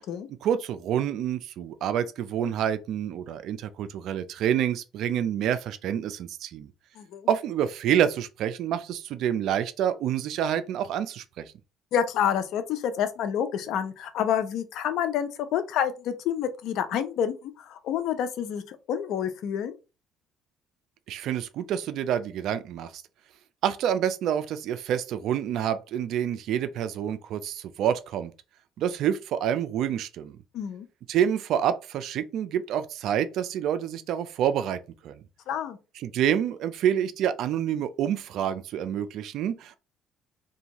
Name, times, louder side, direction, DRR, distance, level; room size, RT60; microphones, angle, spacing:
voice 1, 0.4-6.7 7.3-11.5 21.1-23.0 23.6-28.3 28.8-30.4 31.1-35.2 36.0-39.8, right 9 dB, 70° right, 0.3 m, -27 dB
voice 2, 7.0-7.3 11.9-19.8 30.5-30.9 35.5-35.8, left 9 dB, 70° left, 0.4 m, -28 dB
2.6 x 2.3 x 2.9 m
cardioid pair, 95°, 0 cm